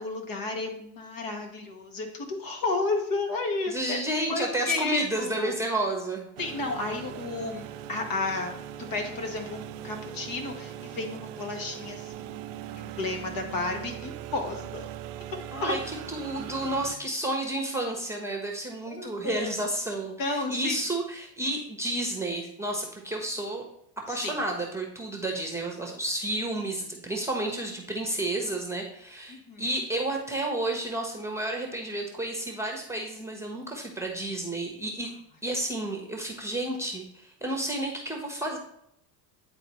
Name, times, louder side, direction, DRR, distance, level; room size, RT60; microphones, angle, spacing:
voice 1, 0.0-4.0 4.3-5.5 6.4-8.5 8.9-14.9 15.6-15.8 18.9-19.5 20.2-20.8 24.1-24.3 29.3-29.6, left 3 dB, 45° left, 3 dB, 1.6 m, -32 dB
voice 2, 3.7-6.2 15.5-23.6 24.1-35.1 35.4-38.6, right 1 dB, 5° right, 1 dB, 1.1 m, -31 dB
sound 1, 6.4-17.0, right 11 dB, 75° right, 0.6 m, -40 dB
9.7 x 4.0 x 3.1 m, 0.74 s
supercardioid pair, 100°, 46 cm